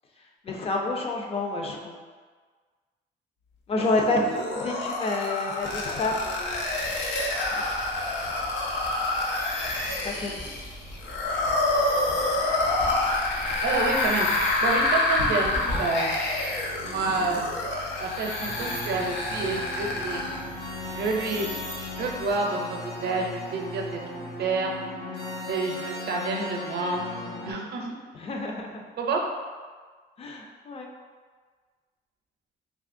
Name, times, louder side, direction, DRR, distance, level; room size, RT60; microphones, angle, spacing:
voice 1, 0.4-2.0 3.7-6.6 7.5-7.6 10.0-10.5 16.8-17.3 28.1-28.8 30.2-30.9, left 2 dB, 35° left, 0 dB, 0.5 m, -29 dB
sound 1, 3.8-20.4, left 2 dB, 90° left, 0.5 m, -28 dB
sound 2, 5.6-22.3, equal, 70° left, 1.4 m, -40 dB
voice 2, 13.6-14.3 14.6-16.1 16.8-17.5 18.0-20.2 20.9-24.0 24.4-24.7 25.5-27.0 27.4-28.0 29.0-29.2, right 3 dB, 65° right, 1 dB, 0.5 m, -28 dB
sound 3, 18.4-27.5, left 1 dB, 55° left, 1.1 m, -37 dB
3.5 x 2.8 x 2.5 m, 1.5 s
cardioid pair, 135°, 18 cm